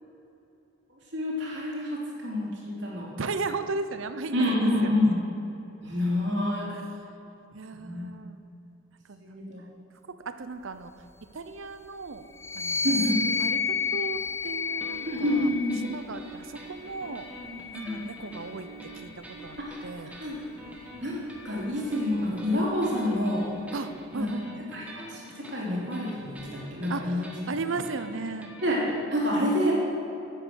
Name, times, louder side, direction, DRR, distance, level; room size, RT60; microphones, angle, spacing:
voice 1, 1.1-3.1 4.3-5.2 5.8-6.7 7.7-8.1 9.2-9.6 12.8-13.2 15.1-15.8 17.8-18.0 19.7-19.8 20.2-20.4 21.0-21.2 21.4-23.5 24.1-24.3 24.7-24.8 25.1-25.2 25.5-27.3 28.6-28.8 29.1-29.7, left 1 dB, 55° right, -4 dB, 3.3 m, -27 dB
voice 2, 3.2-5.2 6.7-6.9 7.5-8.4 9.1-9.4 10.2-10.9 11.3-12.2 12.5-13.0 13.4-15.5 15.8-17.3 17.7-18.7 18.9-20.1 23.7-24.6 26.9-28.5, right 3 dB, 75° right, 10 dB, 0.7 m, -36 dB
sound 1, 12.4-16.0 16.8-18.4, left 5 dB, 15° left, 0.3 m, -31 dB
sound 2, 14.8-29.1, equal, 5° right, 1.3 m, -45 dB
11.0 x 8.8 x 6.4 m, 2.9 s
head